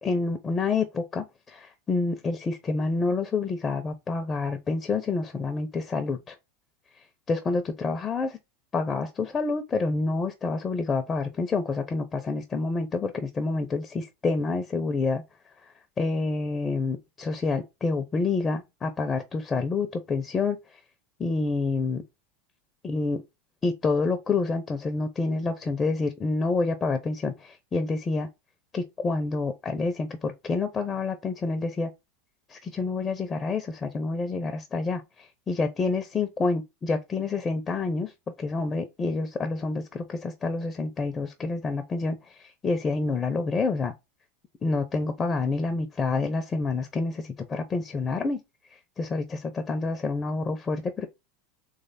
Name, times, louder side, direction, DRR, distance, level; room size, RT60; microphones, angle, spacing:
voice 1, 0.0-6.3 7.3-8.4 8.7-15.2 16.0-20.6 21.2-22.0 22.8-23.2 23.6-28.3 28.7-31.9 32.5-35.0 35.5-38.1 38.4-43.9 44.6-48.4 49.0-51.1, left 3 dB, 25° left, 0.7 m, -28 dB
3.3 x 3.3 x 4.1 m
hypercardioid pair, 105°, 0 cm